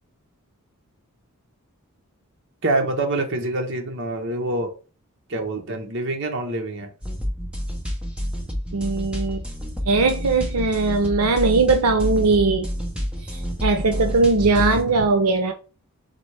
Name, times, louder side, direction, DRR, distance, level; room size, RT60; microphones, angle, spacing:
voice 1, 2.6-4.7 5.3-6.9, right 2 dB, 55° right, 0.9 m, -25 dB
sound 1, 7.0-14.8, equal, 5° right, 0.7 m, -29 dB
voice 2, 8.7-9.4 9.9-12.7 13.6-15.5, right 3 dB, 90° right, 0.6 m, -19 dB
4.1 x 3.6 x 3.2 m
head